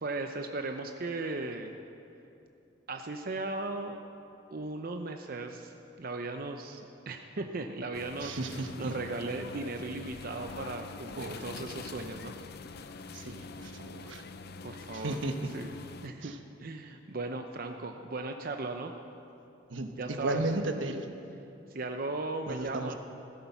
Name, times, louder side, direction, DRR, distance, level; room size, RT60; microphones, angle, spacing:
voice 1, 0.0-1.7 2.9-4.0 4.5-6.8 7.1-8.4 8.8-12.3 14.6-15.2 15.5-15.7 16.0-18.9 20.0-20.4 21.7-22.9, right 2 dB, 50° right, 5 dB, 0.7 m, -37 dB
sound 1, 7.9-16.1, left 4 dB, 55° left, 0.6 m, -45 dB
voice 2, 8.2-8.9 11.2-11.5 13.1-14.2 14.9-15.5 16.2-16.4 19.7-21.1 22.5-23.0, right 2 dB, 80° right, 6 dB, 1.1 m, -34 dB
16.0 x 13.0 x 5.8 m, 2.7 s
head